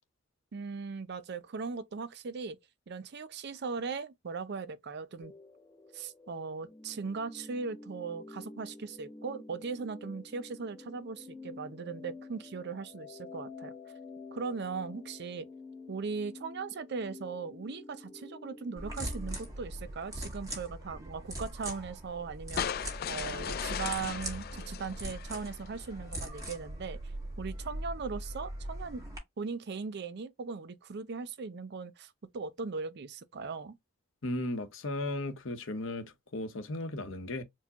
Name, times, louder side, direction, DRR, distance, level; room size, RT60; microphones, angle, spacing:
voice 1, 0.5-2.6 2.9-5.3 5.9-13.7 14.3-15.5 15.9-22.7 23.1-27.0 27.4-29.0 29.4-33.8, right 4 dB, 55° right, 0.5 m, -39 dB
sound 1, 5.2-19.5, left 3 dB, 20° left, 0.7 m, -49 dB
sound 2, 18.8-29.2, right 1 dB, 15° right, 1.6 m, -41 dB
sound 3, 22.6-25.8, left 8 dB, 50° left, 0.4 m, -37 dB
voice 2, 34.2-37.4, left 2 dB, 70° left, 0.9 m, -36 dB
4.5 x 2.2 x 2.9 m
head